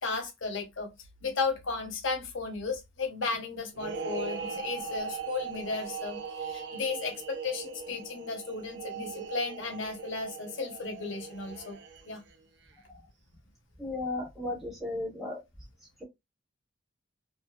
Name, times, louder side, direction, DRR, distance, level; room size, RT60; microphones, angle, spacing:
voice 1, 0.0-0.9 1.2-11.8 12.1-12.2, left 4 dB, 65° left, 0.8 m, -34 dB
sound 1, 3.7-12.3, right 5 dB, 55° right, 0.6 m, -39 dB
voice 2, 13.8-15.4, left 2 dB, ahead, 0.8 m, -34 dB
2.5 x 2.5 x 2.2 m
head